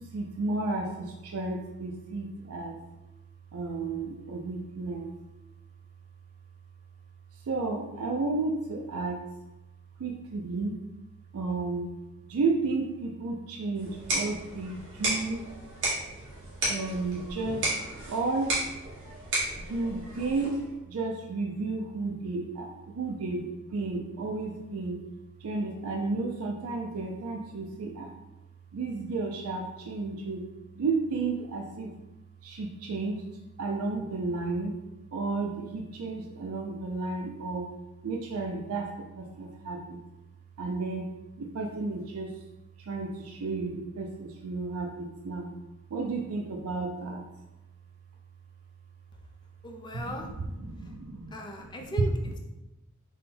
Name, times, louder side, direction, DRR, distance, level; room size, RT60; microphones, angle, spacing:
voice 1, 0.1-0.9 1.2-2.8 3.5-5.1 7.5-9.2 10.0-10.8 11.3-11.9 12.3-15.4 16.7-17.6 18.1-18.5 19.7-20.6 20.9-23.4 23.7-25.0 25.4-28.1 28.7-30.4 30.8-31.9 32.4-33.2 33.6-34.7 35.1-37.7 38.0-38.9 39.2-40.0 40.6-41.0 41.4-42.3 42.9-45.5 45.9-47.2 50.0-50.1 50.6-51.3, right 3 dB, 75° right, 1 dB, 0.4 m, -32 dB
sound 1, 13.8-20.7, right 1 dB, 55° right, 1.5 m, -33 dB
voice 2, 49.6-50.3 50.8-50.9 51.3-52.1, equal, 20° left, 2 dB, 0.4 m, -37 dB
3.6 x 2.2 x 4.1 m, 1.0 s
head